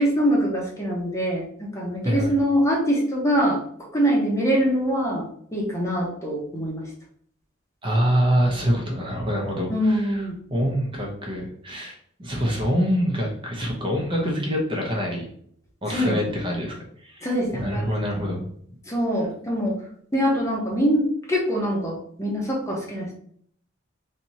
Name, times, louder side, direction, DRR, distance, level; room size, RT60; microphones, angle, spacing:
voice 1, 0.0-3.6 3.9-5.3 5.5-6.8 9.7-10.3 15.9-16.5 17.2-17.9 18.1-18.4 18.9-19.8 20.1-23.1, equal, 15° left, -2 dB, 1.0 m, -24 dB
voice 2, 2.0-2.3 7.8-10.2 10.5-15.2 15.8-18.4, equal, 25° right, -1 dB, 0.9 m, -25 dB
3.4 x 2.9 x 4.1 m, 0.63 s
head